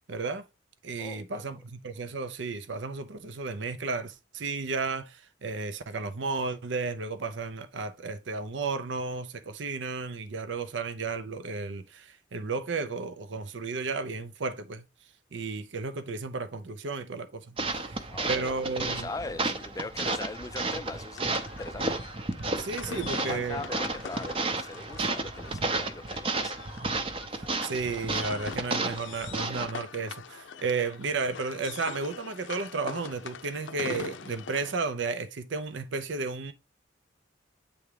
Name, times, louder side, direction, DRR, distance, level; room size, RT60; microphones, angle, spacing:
voice 1, 0.1-0.4 0.8-14.8 15.3-17.6 17.9-18.0 18.2-19.1 22.6-23.7 27.6-36.5, right 4 dB, 75° right, 0.6 m, -33 dB
voice 2, 1.0-1.5 17.8-26.6, left 3 dB, 20° left, 0.4 m, -41 dB
sound 1, 17.6-29.7, right 3 dB, 30° right, 0.7 m, -32 dB
sound 2, 21.1-34.7, left 6 dB, 80° left, 0.5 m, -43 dB
8.5 x 3.5 x 3.3 m
head